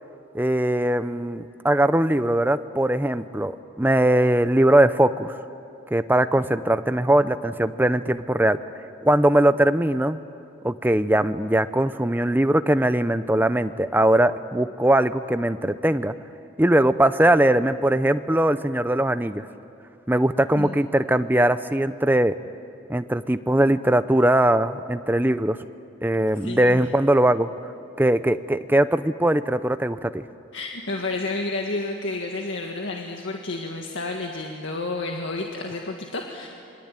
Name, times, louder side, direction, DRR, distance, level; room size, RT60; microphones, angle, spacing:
voice 1, 0.3-5.3 5.9-8.6 9.0-10.2 10.6-16.1 16.6-19.4 20.1-22.3 22.9-25.6 26.0-27.5 28.0-30.2, right 1 dB, 10° right, 12 dB, 0.6 m, -20 dB
voice 2, 26.4-26.8 30.5-36.5, left 2 dB, 75° left, 1 dB, 1.8 m, -30 dB
27.5 x 23.5 x 9.0 m, 2.6 s
head